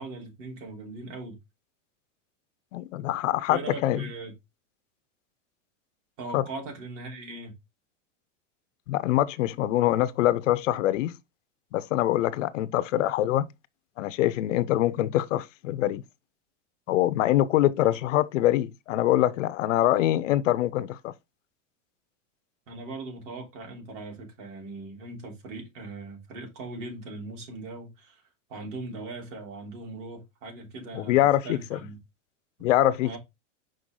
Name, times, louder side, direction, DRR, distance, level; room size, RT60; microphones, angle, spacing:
voice 1, 0.0-1.4 3.5-4.3 6.2-7.5 22.7-28.2 28.5-32.0 33.0-33.2, right 2 dB, 75° right, 3.6 m, -39 dB
voice 2, 2.7-4.0 6.3-6.4 8.9-11.2 11.7-13.5 14.0-16.0 16.9-21.1 30.9-31.8 32.6-33.2, left 14 dB, 85° left, 0.7 m, -24 dB
6.3 x 4.7 x 3.7 m
supercardioid pair, 180°, 36 cm